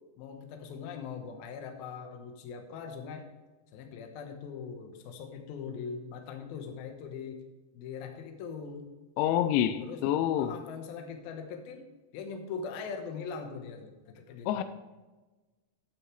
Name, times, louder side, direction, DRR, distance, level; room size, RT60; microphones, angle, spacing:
voice 1, 0.2-3.3 3.7-7.4 7.7-8.9 9.8-10.0 10.3-11.9 12.1-14.6, left 5 dB, 70° left, 2.6 m, -41 dB
voice 2, 9.2-10.6 14.5-14.6, left 11 dB, 85° left, 3.0 m, -27 dB
11.5 x 9.3 x 3.3 m
omnidirectional pair, 5.4 m